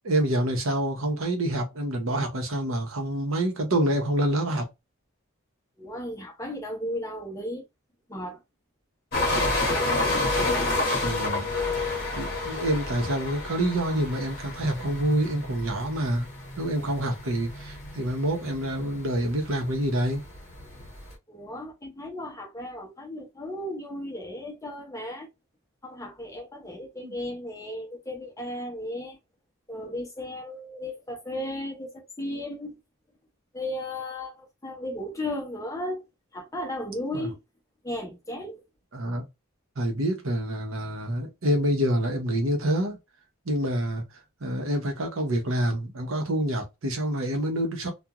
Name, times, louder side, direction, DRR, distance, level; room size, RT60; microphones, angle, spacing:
voice 1, 0.0-4.7 11.0-11.8 12.1-16.3 16.6-20.3 27.0-27.1 37.1-37.3 38.9-39.3 39.8-43.0 43.5-44.0 44.4-47.9, right 1 dB, 70° right, 0.8 m, -27 dB
voice 2, 5.8-7.6 8.1-8.4 21.3-25.3 25.8-29.2 29.7-32.8 33.5-36.0 36.3-37.4 37.8-38.6, left 1 dB, 15° left, 0.6 m, -35 dB
sound 1, 9.1-21.1, left 2 dB, 45° left, 1.1 m, -30 dB
2.4 x 2.2 x 2.9 m
head